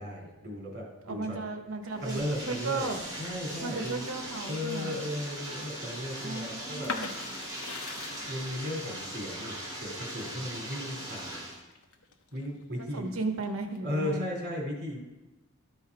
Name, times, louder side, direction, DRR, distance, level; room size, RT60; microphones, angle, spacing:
voice 1, 0.0-1.4 2.0-2.8 3.2-4.1 4.5-6.9 7.9-11.4 12.3-13.1 13.8-15.0, left 1 dB, 50° right, -1 dB, 3.2 m, -36 dB
voice 2, 1.0-2.2 2.5-3.0 3.6-4.9 6.2-7.1 12.8-14.3, right 3 dB, 75° right, 5 dB, 1.1 m, -35 dB
Bathtub (filling or washing), 1.8-11.6, right 1 dB, 20° right, 3.1 m, -40 dB
sound 1, 6.8-12.5 12.9-13.8, left 4 dB, 90° left, 1.0 m, -41 dB
12.5 x 5.5 x 4.8 m, 1.1 s
head